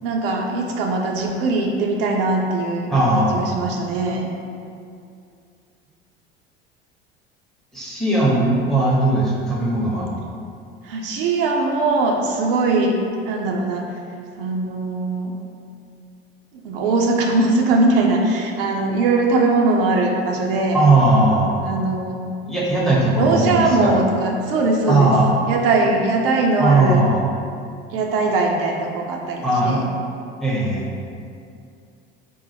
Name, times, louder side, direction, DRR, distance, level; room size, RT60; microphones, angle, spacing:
voice 1, 0.0-4.3 10.8-13.0 13.3-13.9 14.4-15.4 16.6-20.8 21.6-22.3 23.2-25.1 25.5-27.1 27.9-29.8, right 3 dB, 70° right, 0 dB, 0.5 m, -20 dB
voice 2, 2.9-3.4 7.7-10.1 20.7-21.5 22.5-23.9 24.9-25.3 26.6-27.3 29.4-29.8 30.4-30.9, right 2 dB, ahead, -5 dB, 0.8 m, -18 dB
3.8 x 2.0 x 3.3 m, 2.4 s
hypercardioid pair, 70°, 30 cm